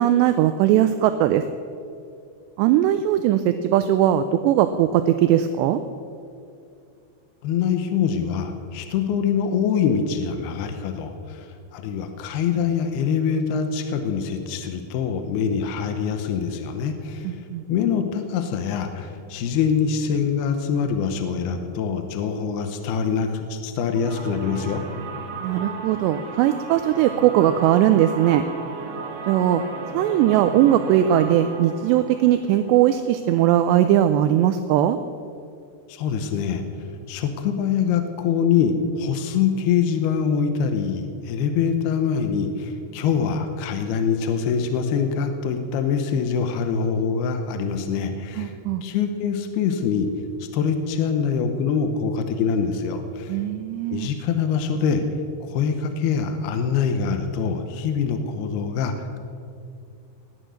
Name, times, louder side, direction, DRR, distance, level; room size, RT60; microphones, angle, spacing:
voice 1, 0.0-1.4 2.6-5.8 17.2-17.6 25.4-28.4 29.3-29.6 29.9-35.0 48.4-48.8 53.3-54.1, right 11 dB, 85° right, 10 dB, 2.6 m, -19 dB
voice 2, 7.4-17.4 17.7-24.8 35.9-36.6 37.1-48.5 48.8-50.1 50.4-53.4 53.9-55.0 55.4-59.2, left 6 dB, 75° left, 7 dB, 2.6 m, -24 dB
sound 1, 23.9-33.6, right 3 dB, 60° right, 1.5 m, -35 dB
18.5 x 11.0 x 6.4 m, 2.5 s
omnidirectional pair, 5.3 m